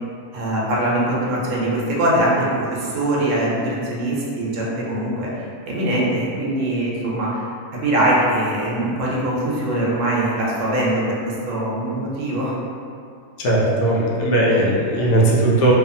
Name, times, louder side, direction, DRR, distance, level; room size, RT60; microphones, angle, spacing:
voice 1, 0.3-7.4 7.8-11.2 11.4-12.6, right 1 dB, 70° right, -5 dB, 0.9 m, -22 dB
voice 2, 13.4-15.7, right 1 dB, 90° left, -4 dB, 1.1 m, -18 dB
2.6 x 2.4 x 2.6 m, 2.4 s
omnidirectional pair, 1.5 m